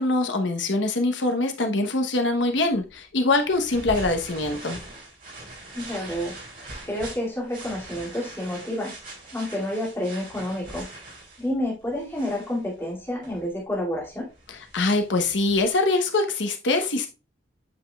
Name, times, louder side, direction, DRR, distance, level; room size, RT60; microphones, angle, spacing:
voice 1, 0.0-4.8 14.7-17.1, left 2 dB, 70° left, 1.0 m, -23 dB
sound 1, 2.0-15.7, right 2 dB, 50° right, 3.5 m, -42 dB
voice 2, 5.7-6.3 6.6-8.9 9.3-10.9 11.4-14.3, left 1 dB, 15° left, 2.5 m, -29 dB
8.4 x 5.0 x 2.3 m
head